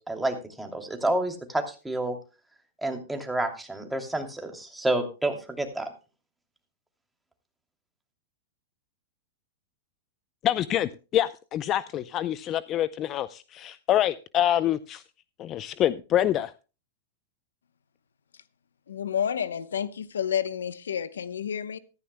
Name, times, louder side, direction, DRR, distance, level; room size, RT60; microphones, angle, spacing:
voice 1, 0.0-2.2 2.8-5.9, right 1 dB, 5° right, 2.8 m, -29 dB
voice 2, 10.4-15.0 15.4-16.5, left 12 dB, 35° left, 0.5 m, -26 dB
voice 3, 18.9-21.8, left 8 dB, 90° left, 0.9 m, -30 dB
15.0 x 14.0 x 2.2 m
hypercardioid pair, 115°, 0 cm